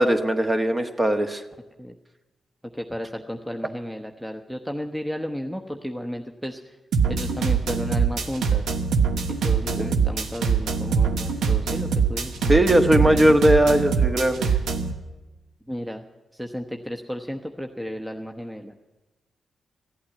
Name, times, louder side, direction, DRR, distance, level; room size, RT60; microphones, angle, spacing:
voice 1, 0.0-1.4 9.8-9.9 12.5-14.5, right 1 dB, 25° right, 6 dB, 1.4 m, -19 dB
voice 2, 2.6-6.8 7.1-8.6 9.3-13.4 15.7-16.0 16.3-18.7, equal, 5° right, 4 dB, 1.0 m, -33 dB
sound 1, 6.9-14.9, right 6 dB, 80° right, 1.1 m, -23 dB
14.5 x 8.6 x 9.4 m, 1.1 s
supercardioid pair, 55°, 0 cm